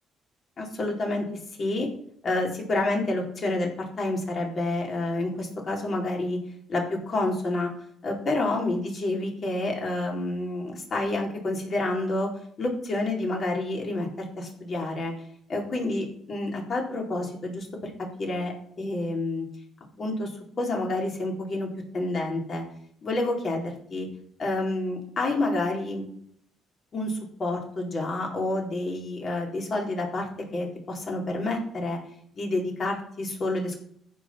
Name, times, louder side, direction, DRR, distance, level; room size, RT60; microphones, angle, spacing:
voice 1, 0.6-1.2 1.6-1.9 2.2-6.4 6.7-7.7 8.0-12.3 12.6-15.1 15.5-17.9 18.2-19.5 20.0-20.3 20.6-21.7 21.9-22.6 23.0-24.1 24.4-26.0 26.9-32.0 32.3-33.8, left 2 dB, 50° left, 0 dB, 4.3 m, -29 dB
15.0 x 5.4 x 5.9 m, 0.66 s
hypercardioid pair, 50°, 0 cm